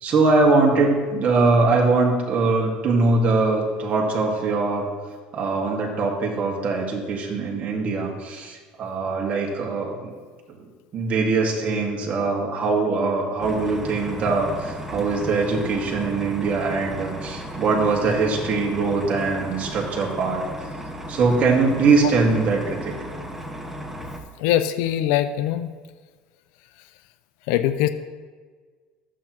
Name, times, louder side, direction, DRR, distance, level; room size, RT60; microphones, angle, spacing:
voice 1, 0.0-4.9 5.3-10.1 10.5-10.6 10.9-20.4 21.1-22.9, right 3 dB, 45° right, -1 dB, 1.8 m, -22 dB
sound 1, 13.4-24.2, equal, 10° right, 1.0 m, -35 dB
voice 2, 24.4-25.7 27.5-27.9, left 12 dB, 80° left, 11 dB, 0.4 m, -22 dB
12.0 x 7.6 x 3.0 m, 1.5 s
supercardioid pair, 105°, 4 cm